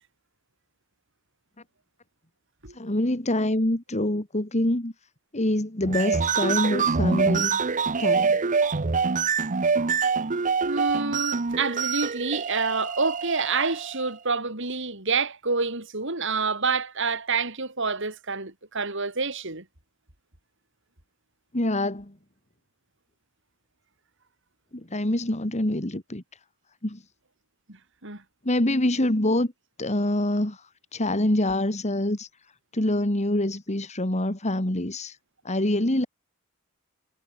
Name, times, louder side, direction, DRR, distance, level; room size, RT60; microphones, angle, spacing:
voice 1, 2.7-4.9 5.3-7.6 8.0-8.4 21.5-22.1 24.7-26.2 26.8-27.0 28.4-29.5 29.8-32.3 32.7-35.2 35.4-36.1, left 1 dB, 35° left, 2.6 m, -25 dB
sound 1, 5.8-14.1, right 5 dB, 40° right, 0.8 m, -25 dB
voice 2, 10.6-19.6 27.7-28.2, right 4 dB, 65° right, 6.3 m, -28 dB
head